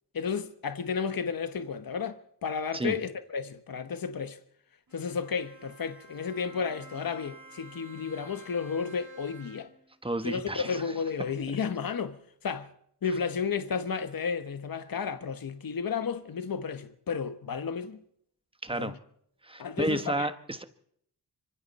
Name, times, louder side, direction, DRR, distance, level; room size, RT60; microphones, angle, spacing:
voice 1, 0.1-4.4 4.9-9.7 10.2-12.2 12.4-12.7 13.0-18.0 18.7-19.0 19.6-20.3, left 6 dB, 60° left, 1.2 m, -32 dB
Bowed string instrument, 4.9-9.9, right 2 dB, 50° right, 6.3 m, -51 dB
voice 2, 10.0-10.8 18.6-18.9 19.4-20.6, right 2 dB, 15° right, 1.1 m, -31 dB
25.5 x 25.0 x 4.2 m
wide cardioid pair, 135°, 39 cm